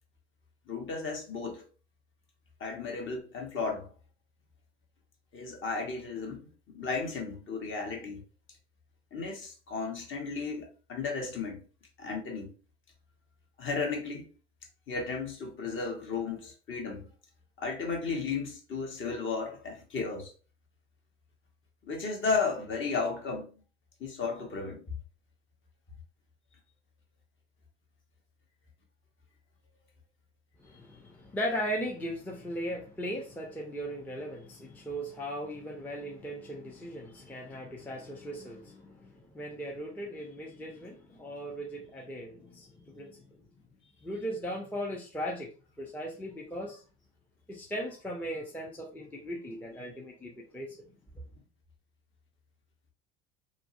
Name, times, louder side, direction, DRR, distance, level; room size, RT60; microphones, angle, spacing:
voice 1, 0.7-1.6 2.6-3.9 5.3-8.2 9.1-11.6 12.0-12.5 13.6-14.2 14.9-17.1 17.6-20.3 21.8-23.5 24.0-24.8, left 4 dB, 35° left, 0.9 m, -34 dB
voice 2, 30.6-43.4 44.0-45.5 45.8-46.8 47.5-50.8 51.1-51.2, equal, 5° left, 0.5 m, -38 dB
2.5 x 2.0 x 2.4 m
hypercardioid pair, 70°, 34 cm